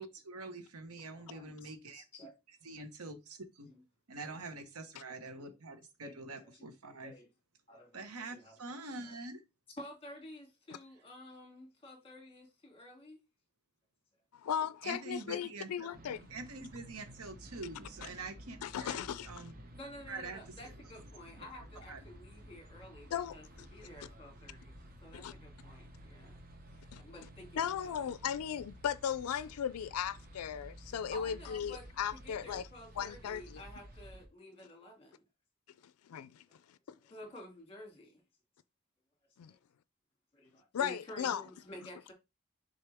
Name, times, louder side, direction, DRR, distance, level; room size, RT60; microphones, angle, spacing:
voice 1, 0.0-2.0 2.6-3.7 4.1-7.1 7.9-9.4 14.8-15.9 16.3-19.0 19.2-19.5 20.1-20.4 21.4-21.5 21.7-22.0, right 3 dB, 85° right, 1.2 m, -45 dB
voice 2, 1.1-2.3 3.7-3.8 6.0-6.1 6.4-6.6 7.0-7.3 7.7-8.6 9.0-9.2 9.8-13.2 19.8-23.4 23.7-24.7 25.0-26.4 26.7-28.1 31.1-31.9 32.2-35.2 36.5-36.6 37.1-38.2 39.5-39.6 40.3-42.1, left 1 dB, 25° left, 2.5 m, -51 dB
voice 3, 14.3-16.2 18.6-19.4 23.1-23.4 25.1-25.3 26.9-27.0 27.6-32.7 33.0-33.6 36.1-36.4 36.7-36.8 39.4-39.5 40.7-41.4, left 8 dB, 85° left, 0.4 m, -36 dB
sound 1, 15.9-34.3, equal, 45° right, 1.0 m, -53 dB
6.5 x 4.2 x 3.4 m
head